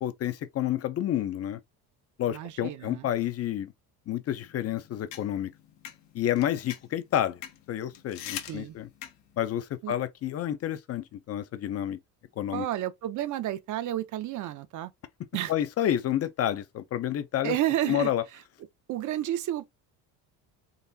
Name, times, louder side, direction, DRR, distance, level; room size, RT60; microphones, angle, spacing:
voice 1, 0.0-1.6 2.2-3.7 4.1-5.5 6.1-7.4 7.7-8.9 9.4-12.0 12.4-12.7 15.5-17.6 17.9-18.2, left 11 dB, 40° left, 0.4 m, -29 dB
voice 2, 2.3-3.1 8.5-8.8 9.8-10.0 12.5-14.9 15.3-15.5 17.4-18.1 18.9-19.7, right 13 dB, 50° right, 0.5 m, -31 dB
sound 1, 4.4-9.5, left 11 dB, 80° left, 0.8 m, -44 dB
3.9 x 2.4 x 2.6 m
cardioid pair, 110°, 40 cm